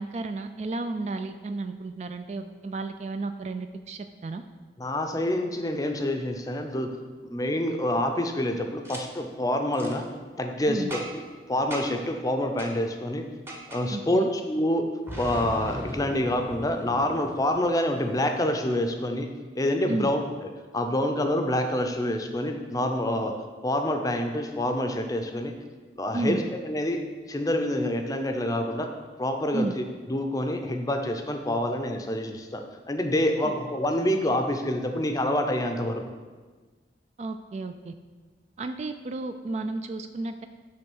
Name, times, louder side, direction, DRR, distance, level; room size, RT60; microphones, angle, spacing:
voice 1, 0.0-4.4 10.7-10.9 13.9-14.3 19.9-20.1 26.1-26.4 29.5-29.7 37.2-37.9 38.6-40.5, right 3 dB, 40° right, 8 dB, 0.3 m, -32 dB
voice 2, 4.8-6.9 7.3-10.1 10.4-11.2 11.5-13.3 13.7-14.9 15.2-19.3 19.5-20.2 20.7-23.3 23.6-25.5 26.0-27.0 27.3-28.9 29.2-29.8 30.1-36.0, left 1 dB, 20° left, 5 dB, 0.5 m, -27 dB
Boom, 8.8-9.0 9.7-10.0 10.9-11.3 11.7-12.1 12.6-12.8 13.5-13.9 15.1-17.8, equal, 15° right, 0.8 m, -38 dB
8.6 x 3.3 x 6.2 m, 1.4 s
head